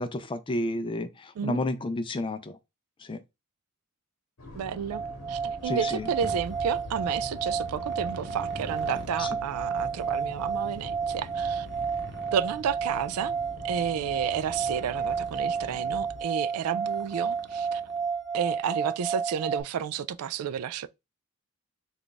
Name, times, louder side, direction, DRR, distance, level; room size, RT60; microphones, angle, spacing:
voice 1, 0.0-2.6 3.1-3.2 5.7-6.1 9.2-9.3, left 2 dB, 20° left, 0.4 m, -31 dB
sound 1, 4.4-16.2, left 1 dB, 70° left, 1.0 m, -45 dB
voice 2, 4.5-5.0 5.3-11.7 12.3-13.4 13.6-17.8 18.3-20.9, right 8 dB, 75° right, 0.3 m, -31 dB
sound 2, 4.9-19.6, right 6 dB, ahead, 0.8 m, -31 dB
Motorcycle, 6.2-18.3, right 1 dB, 50° right, 0.9 m, -46 dB
3.3 x 2.4 x 3.8 m
head